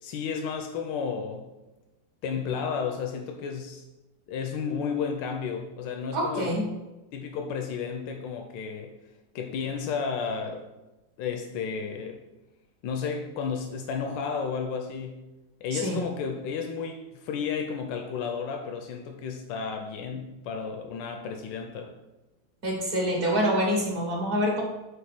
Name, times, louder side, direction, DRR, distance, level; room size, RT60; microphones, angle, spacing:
voice 1, 0.0-1.5 2.2-3.8 4.3-6.5 7.1-8.9 9.3-10.7 11.2-12.2 12.8-15.2 15.6-21.9, left 6 dB, 90° left, 4 dB, 1.3 m, -32 dB
voice 2, 6.1-6.7 15.7-16.0 22.6-24.6, equal, 50° right, -1 dB, 1.6 m, -26 dB
5.3 x 4.0 x 5.9 m, 1.0 s
omnidirectional pair, 2.0 m